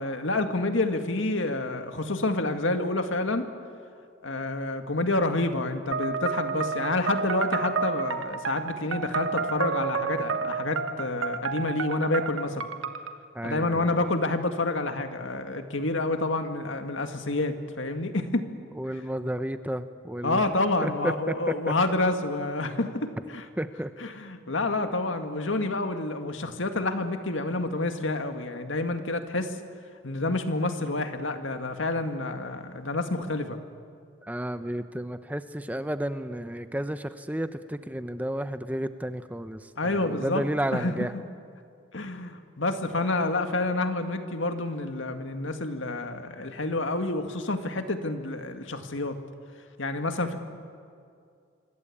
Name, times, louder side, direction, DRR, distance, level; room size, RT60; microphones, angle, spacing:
voice 1, 0.0-3.5 4.2-12.7 13.4-18.5 20.2-23.5 24.0-29.5 30.0-33.6 39.8-40.4 40.7-41.2 41.9-49.2 49.8-50.4, left 2 dB, 75° left, 6 dB, 2.0 m, -28 dB
sound 1, 5.9-13.1, right 5 dB, 85° right, 1.3 m, -30 dB
voice 2, 13.3-14.1 18.7-20.5 20.8-21.3 23.6-23.9 34.2-41.1, right 1 dB, 10° right, 10 dB, 0.7 m, -32 dB
26.0 x 23.5 x 8.6 m, 2.3 s
head